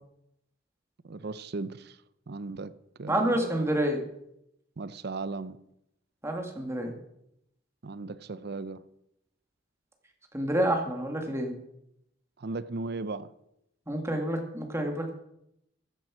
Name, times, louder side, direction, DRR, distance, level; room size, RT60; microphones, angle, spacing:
voice 1, 1.0-2.0 2.3-2.7 3.0-3.6 4.8-5.6 7.8-8.8 12.4-13.3, right 3 dB, 55° right, 0.6 m, -36 dB
voice 2, 3.1-4.1 6.2-7.0 10.3-11.5 13.9-15.1, right 1 dB, 15° right, 1.9 m, -28 dB
14.5 x 7.5 x 6.1 m
head